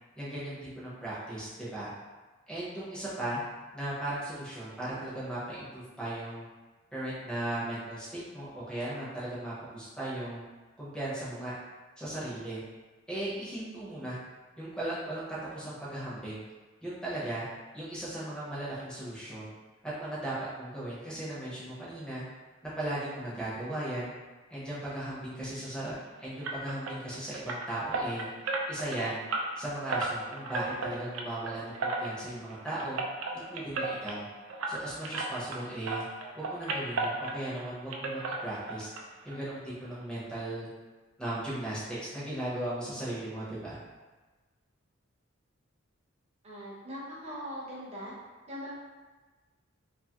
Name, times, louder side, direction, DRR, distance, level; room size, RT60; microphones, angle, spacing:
voice 1, 0.2-1.9 2.5-3.4 3.7-6.5 6.9-10.4 10.8-11.5 12.0-12.6 13.1-14.2 14.6-16.4 16.8-17.5 17.7-19.5 19.8-22.2 22.8-24.1 24.5-28.3 28.7-29.2 29.6-33.0 33.3-34.2 34.7-36.0 36.3-38.9 39.2-40.7 41.2-43.8, right 1 dB, 5° left, -8 dB, 0.7 m, -37 dB
sound 1, 26.4-35.6 35.9-37.7 37.9-39.0 39.3-39.4 39.8-39.9 40.3-40.4, right 3 dB, 85° right, 0.4 m, -35 dB
voice 2, 46.4-48.1 48.5-48.7, equal, 30° right, -6 dB, 0.7 m, -40 dB
2.7 x 2.4 x 2.8 m, 1.3 s
head